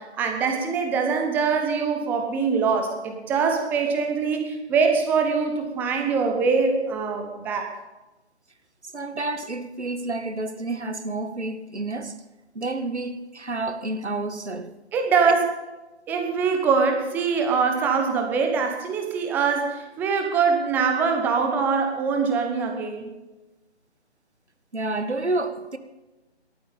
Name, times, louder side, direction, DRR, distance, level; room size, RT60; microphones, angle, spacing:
voice 1, 0.0-7.8 14.9-15.5 16.1-23.0, right 5 dB, 5° right, 0.9 m, -23 dB
voice 2, 8.9-12.2 12.5-14.7 24.7-25.8, right 2 dB, 80° right, 1.9 m, -29 dB
18.5 x 13.5 x 5.3 m
figure-of-eight pair, 145°, 34 cm